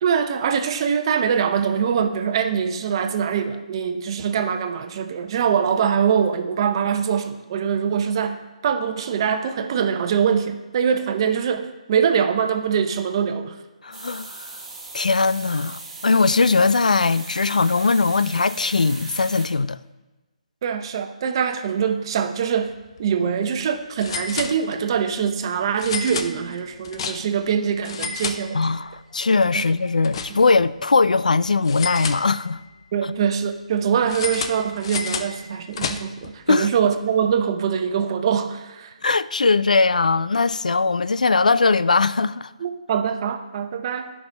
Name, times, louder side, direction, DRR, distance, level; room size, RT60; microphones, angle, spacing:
voice 1, 0.0-13.6 20.6-28.7 29.5-29.7 30.3-30.4 32.9-38.9 42.6-44.1, right 7 dB, 40° right, 0.7 m, -23 dB
voice 2, 13.8-14.5 14.9-19.8 28.5-32.6 36.5-36.7 39.0-42.5, left 4 dB, 85° left, 0.3 m, -20 dB
sound 1, 13.9-19.5, right 3 dB, 10° right, 1.8 m, -38 dB
sound 2, 22.8-23.0 23.3-23.4 24.0-25.0 25.8-27.5 27.8-29.0 29.3-30.7 31.6-32.8 34.1-36.3, left 5 dB, 45° left, 0.6 m, -31 dB
13.0 x 5.5 x 3.4 m
figure-of-eight pair, 145°, 4 cm